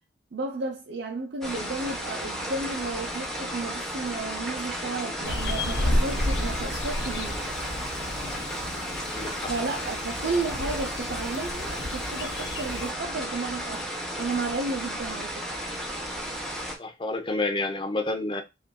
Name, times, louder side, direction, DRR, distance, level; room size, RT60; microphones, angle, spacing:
voice 1, 0.3-7.4 9.5-13.8 14.2-15.5, right 3 dB, 60° right, 0.5 m, -33 dB
sound 1, 1.4-16.7, equal, ahead, 0.9 m, -34 dB
sound 2, 5.2-12.9, left 1 dB, 65° left, 0.8 m, -32 dB
voice 2, 9.1-9.5 16.8-18.4, left 2 dB, 25° left, 0.6 m, -29 dB
5.4 x 2.5 x 2.2 m
head